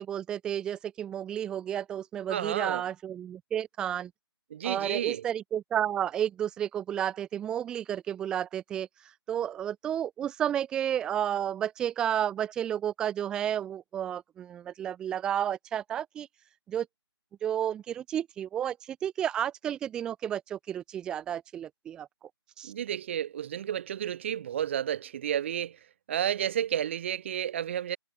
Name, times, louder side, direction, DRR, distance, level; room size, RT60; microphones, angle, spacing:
voice 1, 0.0-4.1 4.6-8.9 9.3-16.3 16.7-16.9 17.4-22.1 22.6-22.7, right 10 dB, 5° right, 1.1 m, -31 dB
voice 2, 2.3-2.8 4.5-5.3 22.6-25.8 26.1-28.0, right 10 dB, 25° right, 2.7 m, -31 dB
hypercardioid pair, 170°, 14 cm